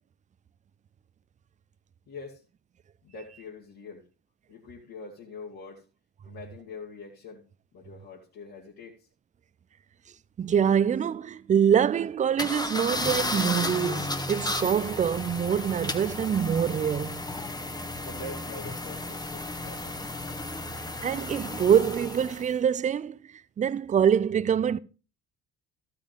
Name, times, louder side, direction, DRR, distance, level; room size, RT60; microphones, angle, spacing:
voice 1, 2.1-2.4 3.0-4.0 4.5-5.9 6.3-7.4 7.7-9.1 18.0-20.0, left 3 dB, 50° left, 2.3 m, -44 dB
voice 2, 10.4-17.2 21.0-23.2 23.6-24.8, right 8 dB, 15° right, 0.4 m, -25 dB
sound 1, 12.4-22.5, left 2 dB, 10° left, 1.1 m, -33 dB
14.0 x 5.7 x 5.1 m
figure-of-eight pair, 50°, 45 cm